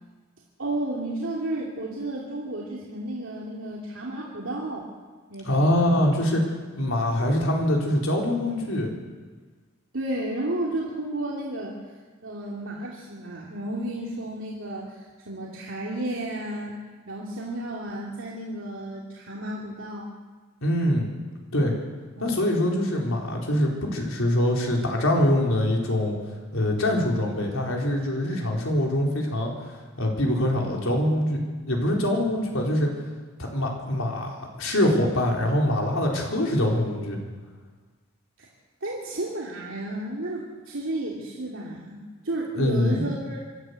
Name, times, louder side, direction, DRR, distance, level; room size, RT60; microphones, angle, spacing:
voice 1, 0.6-4.9 5.3-5.9 9.9-11.8 12.2-20.1 22.2-22.4 38.4-38.5 38.8-43.4, right 1 dB, 70° right, -3 dB, 2.8 m, -32 dB
voice 2, 5.4-6.4 6.8-8.9 20.6-21.1 21.5-21.7 22.2-26.2 26.5-29.5 30.0-32.9 33.4-37.2 42.6-43.1, left 1 dB, 80° left, 0 dB, 4.3 m, -24 dB
25.5 x 12.5 x 8.2 m, 1.4 s
head